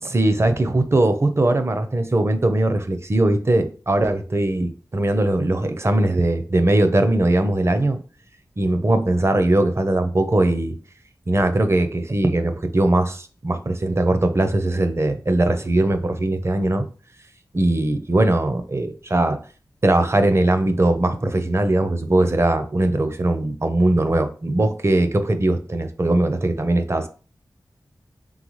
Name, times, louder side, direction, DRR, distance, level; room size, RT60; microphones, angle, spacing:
voice 1, 0.0-8.0 8.6-10.8 11.3-16.8 17.5-19.4 19.8-27.1, right 1 dB, 35° right, 8 dB, 0.6 m, -20 dB
3.8 x 3.5 x 3.1 m, 0.38 s
wide cardioid pair, 60°, 8 cm